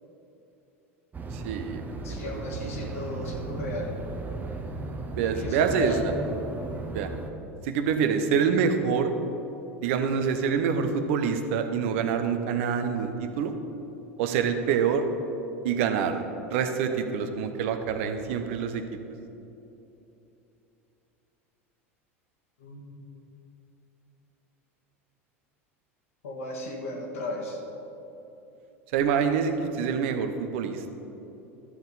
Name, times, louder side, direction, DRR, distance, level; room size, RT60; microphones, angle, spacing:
sound 1, 1.1-7.3, right 2 dB, 25° right, 0.9 m, -36 dB
voice 1, 1.3-1.8 2.2-2.5 5.2-5.9 6.9-7.1 7.6-9.1 9.8-13.5 14.2-15.1 15.6-16.2 16.5-18.8 28.9-30.9, right 6 dB, 65° right, 7 dB, 0.8 m, -26 dB
voice 2, 2.0-3.9 5.2-6.1 22.6-23.0 26.2-27.6, left 1 dB, 75° left, 0 dB, 1.7 m, -34 dB
12.5 x 7.1 x 4.0 m, 3.0 s
hypercardioid pair, 80°, 7 cm